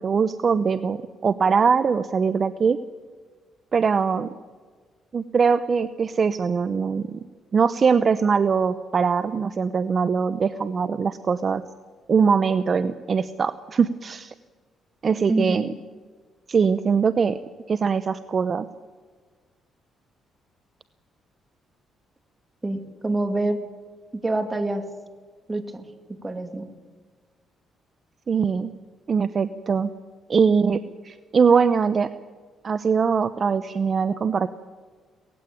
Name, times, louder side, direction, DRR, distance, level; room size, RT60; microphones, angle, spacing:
voice 1, 0.0-2.8 3.7-4.3 5.1-7.1 7.5-11.6 12.1-14.3 15.0-15.7 16.5-17.4 17.7-18.7 28.3-28.7 29.1-29.9 30.3-32.1 32.6-34.5, right 5 dB, 45° right, 13 dB, 0.7 m, -22 dB
voice 2, 15.3-15.7 22.6-23.6 24.2-24.9 25.5-25.9 26.2-26.7, right 2 dB, 20° right, 7 dB, 2.4 m, -26 dB
18.5 x 15.5 x 9.2 m, 1.5 s
cardioid pair, 90°, 0 cm